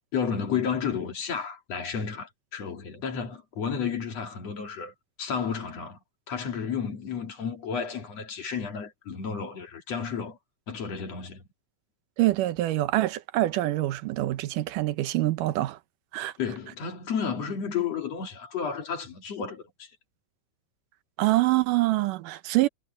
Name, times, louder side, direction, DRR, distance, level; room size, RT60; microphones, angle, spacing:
voice 1, 0.1-6.0 6.3-10.4 10.7-11.4 16.4-19.9, left 6 dB, 55° left, 3.6 m, -32 dB
voice 2, 12.2-15.8 16.1-16.3 21.2-22.7, right 17 dB, 90° right, 2.5 m, -25 dB
omnidirectional pair, 3.6 m